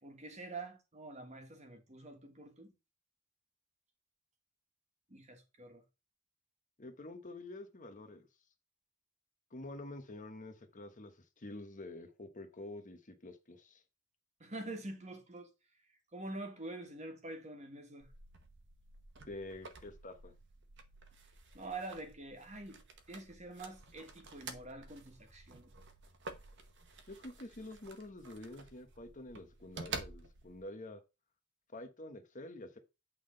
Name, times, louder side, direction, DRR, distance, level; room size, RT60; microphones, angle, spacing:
voice 1, 0.0-2.7 5.1-5.8 14.4-15.5 16.1-18.1 21.5-25.7, right 2 dB, 35° right, 1.5 m, -46 dB
voice 2, 6.8-8.3 9.5-13.8 19.3-20.3 27.1-31.0 31.7-32.8, left 2 dB, 35° left, 1.0 m, -48 dB
sound 1, 18.0-30.6, right 4 dB, 55° right, 1.0 m, -50 dB
8.4 x 3.9 x 5.0 m
head